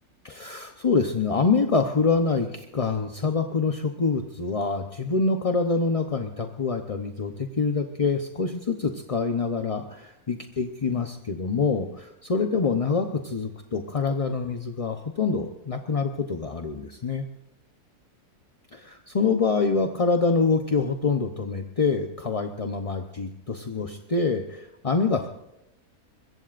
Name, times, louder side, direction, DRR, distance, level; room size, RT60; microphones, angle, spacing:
voice 1, 0.2-17.3 18.7-25.3, left 4 dB, 30° left, 5 dB, 0.6 m, -26 dB
23.5 x 22.0 x 2.5 m, 0.83 s
omnidirectional pair, 1.6 m